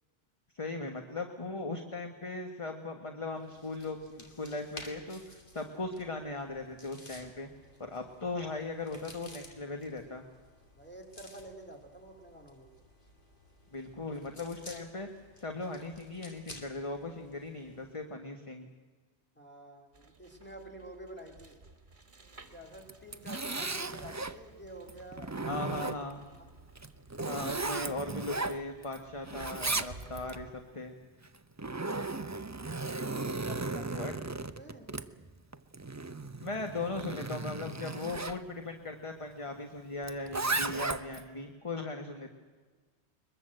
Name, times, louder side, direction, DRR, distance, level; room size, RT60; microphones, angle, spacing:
voice 1, 0.5-7.5 7.8-10.3 13.7-15.1 15.4-18.7 25.4-26.2 27.2-30.9 33.9-34.1 36.4-42.4, left 3 dB, 30° left, 5 dB, 1.5 m, -38 dB
sound 1, 3.3-18.0, left 1 dB, 45° left, 2.8 m, -54 dB
voice 2, 10.7-12.7 19.3-21.6 22.5-25.5 26.4-26.5 27.1-27.4 33.1-34.1 34.4-35.1, right 1 dB, 10° left, 2 dB, 3.2 m, -49 dB
sound 2, 19.9-30.5, right 2 dB, 45° right, 1.9 m, -54 dB
Zipper (clothing), 22.8-24.4 24.9-26.2 26.7-29.0 29.2-30.4 31.2-38.4 40.0-41.2, right 3 dB, 20° right, 0.5 m, -36 dB
22.0 x 21.5 x 7.8 m, 1.4 s
omnidirectional pair, 1.2 m